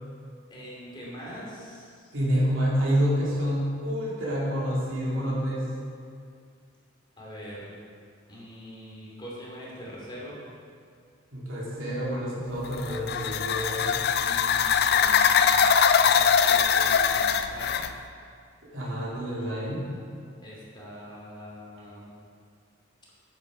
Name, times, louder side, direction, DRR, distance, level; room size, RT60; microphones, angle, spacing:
voice 1, 0.5-2.1 7.2-7.8 8.3-10.4 14.2-17.8 20.4-22.1, equal, 25° left, -5 dB, 2.6 m, -43 dB
voice 2, 2.1-5.7 11.3-14.0 18.7-19.9, equal, 90° right, -6 dB, 2.8 m, -28 dB
sound 1, 12.6-17.9, left 7 dB, 55° left, 0.4 m, -22 dB
9.3 x 8.8 x 5.0 m, 2.3 s
head